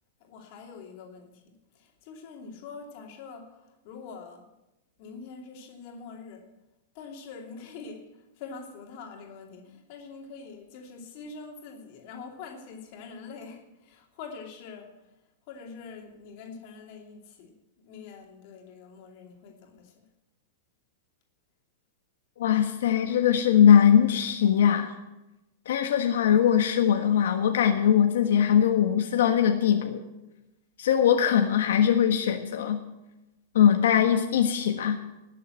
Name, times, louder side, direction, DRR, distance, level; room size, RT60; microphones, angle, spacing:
voice 1, 0.3-1.3 2.0-3.4 3.8-4.5 5.0-6.5 6.9-8.0 8.4-14.9 15.5-17.5 17.8-19.9, left 5 dB, 40° left, 2.9 m, -44 dB
voice 2, 22.4-24.9 25.6-30.0 30.8-32.8 33.5-35.0, left 9 dB, 80° left, 1.5 m, -21 dB
20.0 x 7.6 x 7.8 m
supercardioid pair, 175°, 0 cm